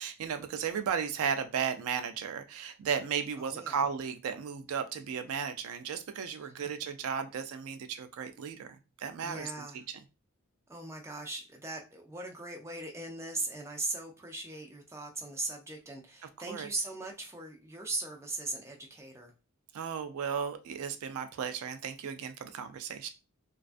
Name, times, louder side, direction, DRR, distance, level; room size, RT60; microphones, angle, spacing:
voice 1, 0.0-10.0 16.5-16.7 19.7-23.1, right 7 dB, 80° right, 0.3 m, -35 dB
voice 2, 3.4-3.8 6.4-6.5 9.2-9.8 10.7-19.3, right 2 dB, 15° right, 0.4 m, -39 dB
2.3 x 2.3 x 2.4 m
head